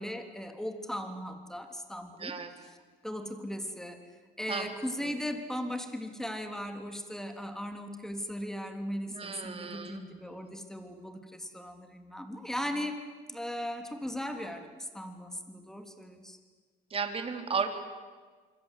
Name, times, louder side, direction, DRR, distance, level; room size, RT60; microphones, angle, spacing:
voice 1, 0.0-2.3 2.7-2.8 3.0-4.0 4.4-13.0 13.3-16.4, equal, 5° left, 6 dB, 3.3 m, -38 dB
voice 2, 2.2-2.5 4.5-4.7 5.0-5.1 9.1-10.0 16.9-17.7, right 5 dB, 35° right, 6 dB, 3.8 m, -34 dB
26.0 x 24.5 x 8.5 m, 1.5 s
cardioid pair, 110°, 17 cm